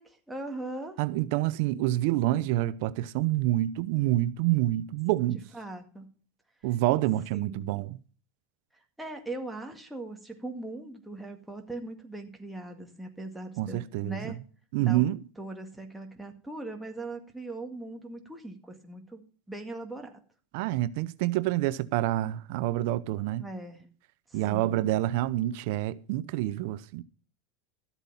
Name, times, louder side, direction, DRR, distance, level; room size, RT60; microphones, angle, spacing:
voice 1, 0.0-1.0 5.5-6.1 7.3-7.7 8.7-14.4 14.8-15.1 15.4-19.2 19.5-20.2 23.4-23.9 24.3-24.9, right 2 dB, 5° right, 2.0 m, -40 dB
voice 2, 1.0-5.4 6.6-8.0 13.6-14.2 14.7-15.2 20.5-23.4 24.3-27.0, right 15 dB, 65° right, 0.6 m, -27 dB
13.0 x 8.1 x 5.6 m
supercardioid pair, 135°, 0 cm